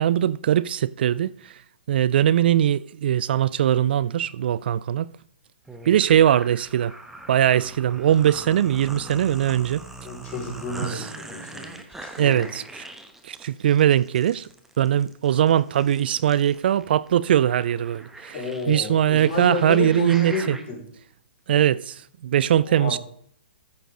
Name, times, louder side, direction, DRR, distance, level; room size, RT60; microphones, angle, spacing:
voice 1, 0.0-1.5 1.9-5.1 5.9-6.9 7.3-9.8 10.9-11.1 12.2-12.9 13.2-14.5 14.8-18.3 18.7-20.6 21.5-23.0, right 10 dB, 55° right, 0.3 m, -21 dB
sound 1, 5.7-20.6, right 2 dB, 5° right, 1.0 m, -42 dB
voice 2, 10.0-12.5 18.3-20.8 22.6-22.9, left 4 dB, 35° left, 5.1 m, -31 dB
14.0 x 6.6 x 3.8 m
hypercardioid pair, 135°, 6 cm